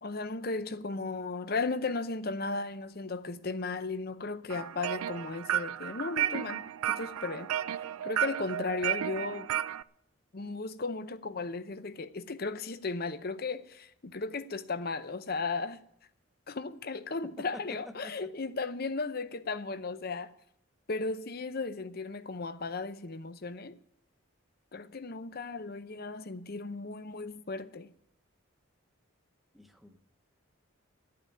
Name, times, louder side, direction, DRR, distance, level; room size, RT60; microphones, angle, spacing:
voice 1, 0.0-7.5 8.0-9.5 10.3-15.8 16.5-20.3 20.9-23.8 24.7-27.9, left 3 dB, 45° left, 0.7 m, -35 dB
sound 1, 4.5-9.8, right 11 dB, 90° right, 0.4 m, -33 dB
voice 2, 17.4-18.3 29.5-30.0, equal, ahead, 1.0 m, -48 dB
12.0 x 8.7 x 9.3 m
head